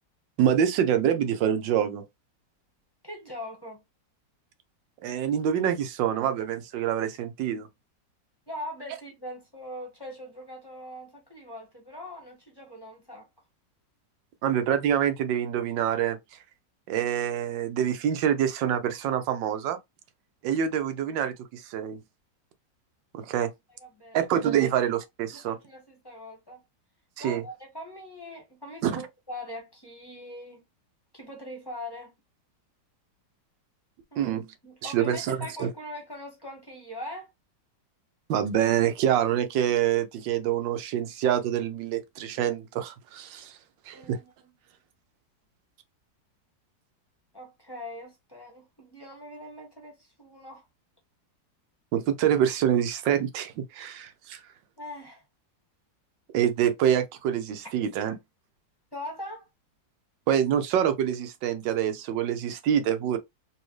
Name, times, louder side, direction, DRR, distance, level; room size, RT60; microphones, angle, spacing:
voice 1, 0.4-2.0 5.0-7.7 14.4-16.2 16.9-19.8 20.4-22.0 23.1-23.5 24.1-25.6 27.2-27.4 28.8-29.0 34.2-34.5 34.8-35.7 38.3-43.6 43.9-44.2 51.9-54.4 56.3-58.2 60.3-63.2, right 9 dB, 80° right, 1.4 m, -26 dB
voice 2, 3.0-3.8 8.5-13.3 23.4-23.5 23.8-24.2 24.6-24.7 25.3-26.6 27.2-30.6 31.1-32.1 34.1-37.3 43.9-44.5 47.3-50.6 54.8-55.2 58.9-59.5, left 1 dB, 15° left, 1.0 m, -41 dB
4.2 x 2.7 x 3.1 m
omnidirectional pair, 2.0 m